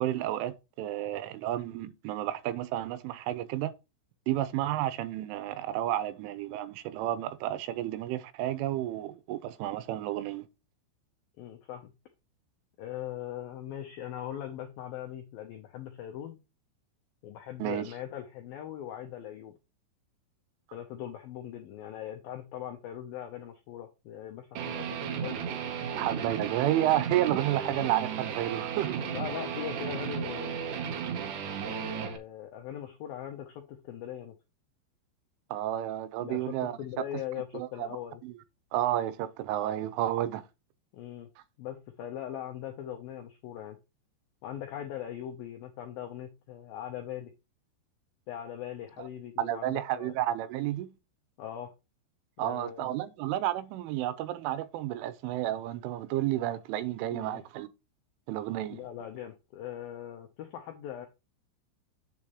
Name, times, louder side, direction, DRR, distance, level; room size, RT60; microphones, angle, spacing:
voice 1, 0.0-3.7 4.3-10.5 17.6-17.9 26.0-29.0 35.5-36.8 37.5-38.0 38.2-38.3 38.7-40.5 49.0-49.1 49.4-50.9 52.4-57.7 58.3-58.8, right 13 dB, 90° right, 3.3 m, -31 dB
voice 2, 11.4-11.9 12.8-16.4 17.2-19.5 20.7-25.4 29.0-30.9 31.6-34.3 36.2-38.2 40.9-41.3 41.6-43.8 44.4-47.3 48.3-50.1 51.4-51.7 52.4-52.9 57.1-57.4 58.7-61.1, left 11 dB, 80° left, 2.1 m, -40 dB
Guitar, 24.6-32.2, right 7 dB, 70° right, 2.0 m, -34 dB
8.5 x 7.2 x 3.1 m
omnidirectional pair, 5.5 m